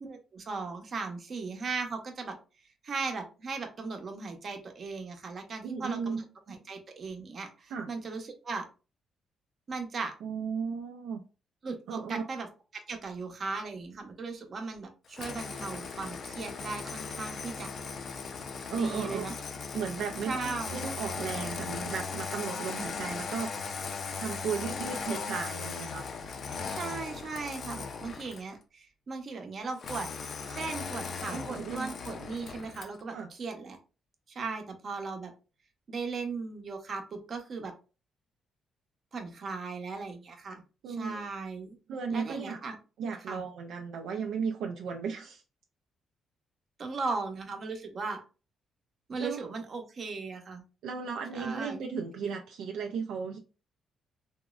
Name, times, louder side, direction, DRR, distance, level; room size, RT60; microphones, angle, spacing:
voice 1, 0.0-2.4 2.8-8.6 9.7-10.1 11.6-12.5 12.7-17.7 18.8-19.3 20.3-20.8 26.5-30.1 30.5-33.8 34.3-35.3 35.9-37.7 39.1-40.6 40.9-41.8 42.1-42.8 43.3-43.4 46.8-48.2 49.1-50.6 51.3-51.8, right 4 dB, 50° right, 0.7 m, -37 dB
voice 2, 5.6-6.2 7.7-7.9 10.2-11.2 11.9-12.2 18.7-19.4 19.7-23.5 24.2-26.0 27.7-27.8 31.3-31.9 33.1-33.3 40.8-41.2 41.9-42.6 43.0-45.4 49.2-49.4 50.8-53.4, right 6 dB, 80° right, 0.4 m, -35 dB
Engine starting, 15.1-28.5 29.8-33.0, left 5 dB, 55° left, 0.4 m, -38 dB
3.5 x 2.0 x 2.3 m
cardioid pair, 90°, 0 cm